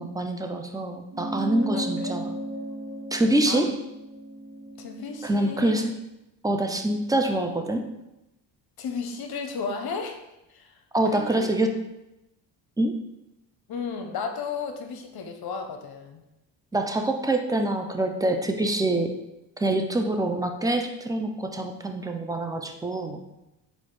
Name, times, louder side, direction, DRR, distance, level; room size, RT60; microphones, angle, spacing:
voice 1, 0.0-2.4 3.1-3.8 5.2-6.0 6.4-7.9 10.9-11.7 12.8-13.0 16.7-19.1 19.6-23.2, right 1 dB, 10° right, 4 dB, 0.4 m, -25 dB
sound 1, 1.1-5.9, right 1 dB, 45° right, 1.3 m, -35 dB
voice 2, 1.7-2.2 3.5-3.7 4.8-5.7 8.8-10.2 10.5-10.8 11.1-11.5 13.7-16.2, left 5 dB, 50° left, 5 dB, 0.8 m, -34 dB
4.1 x 2.6 x 4.7 m, 0.92 s
supercardioid pair, 80°, 46 cm